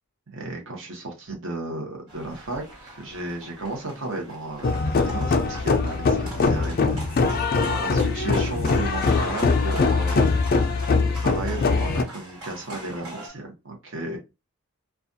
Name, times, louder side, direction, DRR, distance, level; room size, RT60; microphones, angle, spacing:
voice 1, 0.3-7.0 7.2-10.4 10.7-10.9 11.2-14.2, right 2 dB, 55° right, 1 dB, 0.8 m, -34 dB
sound 1, 2.1-13.3, right 1 dB, 80° right, 1.6 m, -43 dB
sound 2, 4.6-12.0, left 4 dB, 40° left, 0.3 m, -22 dB
2.4 x 2.2 x 2.5 m, 0.26 s
head